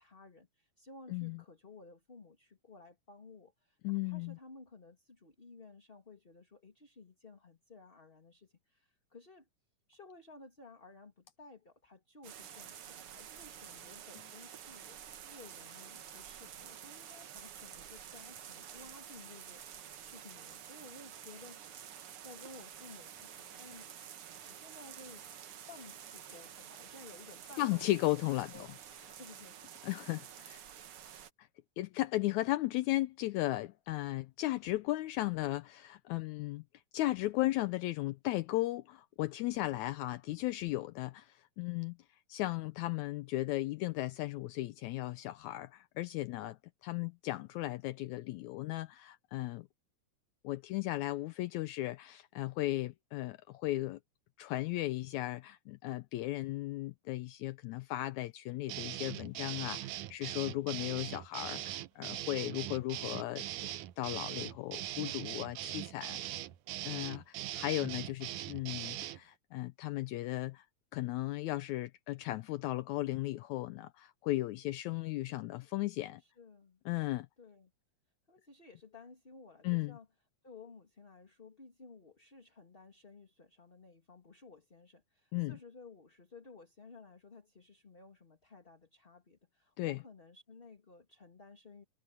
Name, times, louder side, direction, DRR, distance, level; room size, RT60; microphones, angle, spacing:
voice 1, 0.0-9.5 9.9-21.6 21.9-23.8 24.5-25.3 25.7-27.8 28.2-29.8 76.2-76.8 77.4-77.7 78.3-80.1 80.4-91.8, left 3 dB, 20° left, 2.4 m, -56 dB
voice 2, 3.8-4.4 27.6-28.7 29.8-30.6 31.4-31.5 31.8-36.6 36.9-42.0 42.3-49.7 50.4-54.0 54.4-63.4 64.0-66.4 66.8-70.7 70.9-76.2 76.9-77.3 79.6-80.0 85.3-85.6 89.8-90.0, left 17 dB, 80° left, 1.9 m, -36 dB
sound 1, 12.2-31.3, right 9 dB, 55° right, 1.8 m, -50 dB
sound 2, 58.7-69.2, right 14 dB, 90° right, 2.3 m, -41 dB
omnidirectional pair, 3.5 m